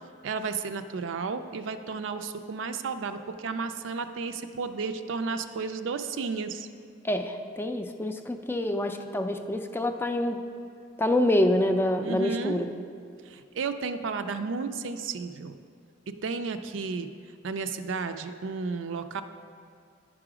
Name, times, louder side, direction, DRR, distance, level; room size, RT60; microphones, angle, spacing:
voice 1, 0.2-6.7 12.0-12.6 13.3-15.6 16.1-17.1 17.4-19.2, right 4 dB, 90° right, 9 dB, 0.4 m, -33 dB
voice 2, 7.0-10.4 11.0-12.7, left 1 dB, 10° left, 6 dB, 0.3 m, -26 dB
10.5 x 4.9 x 4.9 m, 2.3 s
head